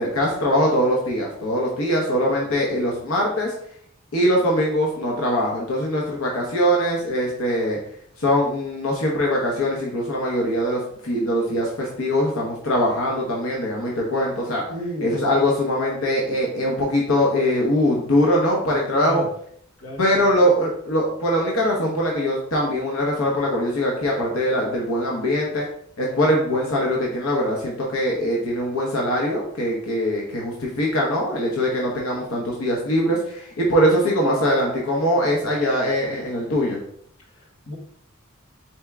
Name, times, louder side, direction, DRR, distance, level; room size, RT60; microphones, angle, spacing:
voice 1, 0.0-3.5 4.1-7.8 8.2-14.6 15.0-19.2 20.0-25.7 26.0-36.8, equal, 90° left, -2 dB, 0.9 m, -22 dB
voice 2, 14.7-15.2 18.9-19.3 19.8-20.3 37.3-37.7, equal, 65° left, -1 dB, 1.2 m, -32 dB
4.4 x 3.5 x 3.5 m, 0.65 s
head